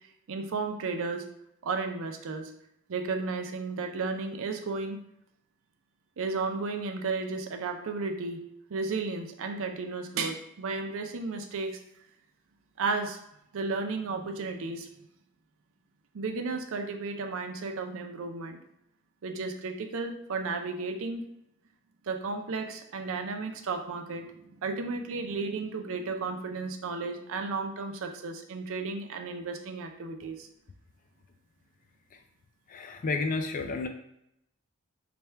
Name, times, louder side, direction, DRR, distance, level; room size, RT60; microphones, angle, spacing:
voice 1, 0.3-1.2 1.6-2.5 2.9-5.0 6.2-8.4 8.7-11.8 12.8-13.2 13.5-14.9 16.1-18.6 19.2-21.2 22.1-30.5, right 4 dB, 65° right, 5 dB, 0.5 m, -33 dB
voice 2, 32.7-33.9, left 3 dB, 35° left, 5 dB, 0.4 m, -31 dB
3.3 x 2.3 x 4.3 m, 0.78 s
head